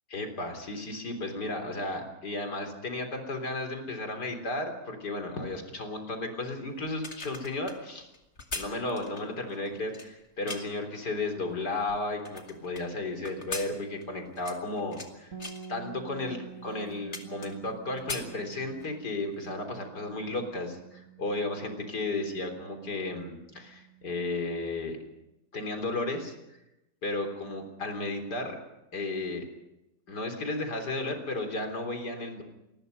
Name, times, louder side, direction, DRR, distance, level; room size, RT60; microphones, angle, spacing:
voice 1, 0.1-8.1 8.5-15.3 15.7-25.0 25.5-26.3 27.0-28.6 28.9-29.5 30.1-32.4, left 2 dB, 75° left, 6 dB, 4.3 m, -34 dB
sound 1, 6.9-10.9 11.4-12.8 13.2-15.1 15.4-15.7 16.3-16.4 16.7-17.7 18.0-19.0 19.3-19.5, left 3 dB, 40° left, 2.6 m, -40 dB
sound 2, 15.3-25.1, right 7 dB, 50° right, 1.9 m, -49 dB
27.0 x 20.5 x 5.4 m, 0.93 s
omnidirectional pair, 1.8 m